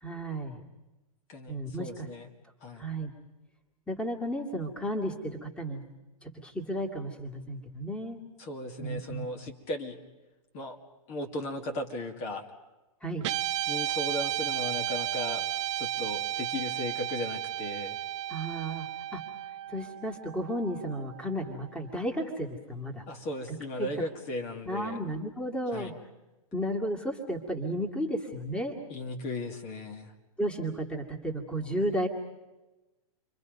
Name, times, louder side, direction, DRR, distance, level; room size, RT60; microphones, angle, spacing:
voice 1, 0.0-0.6 1.5-2.1 2.8-3.1 3.9-5.8 6.2-8.2 8.8-9.2 13.0-13.3 18.3-19.2 19.7-23.1 23.8-23.9 24.7-25.9 26.5-28.8 30.4-32.1, right 1 dB, 5° left, 1 dB, 2.3 m, -33 dB
voice 2, 1.3-2.3 2.6-2.9 8.4-10.0 10.5-10.8 11.1-12.5 13.7-15.5 15.8-18.0 23.1-25.0 25.7-25.9 28.9-30.1, left 1 dB, 35° left, 3 dB, 2.4 m, -36 dB
Guitar, 13.2-21.7, right 13 dB, 50° right, 0.7 m, -34 dB
29.5 x 24.0 x 5.4 m, 1.1 s
hypercardioid pair, 125°, 19 cm